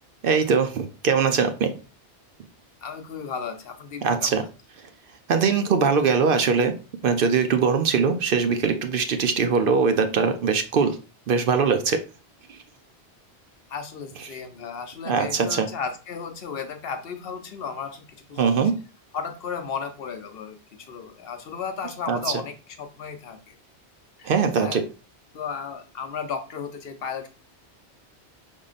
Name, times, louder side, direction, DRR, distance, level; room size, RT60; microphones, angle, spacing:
voice 1, 0.2-1.7 4.0-4.4 5.3-6.7 7.0-11.0 11.3-12.0 12.5-12.6 15.1-15.7 18.4-18.7 22.1-22.3 24.2-24.8, right 5 dB, 60° right, 7 dB, 0.7 m, -21 dB
voice 2, 2.8-4.4 13.7-18.7 19.1-23.5 24.2-24.8 25.3-27.3, left 6 dB, 65° left, 6 dB, 0.9 m, -34 dB
5.1 x 3.6 x 2.5 m, 0.33 s
omnidirectional pair, 1.1 m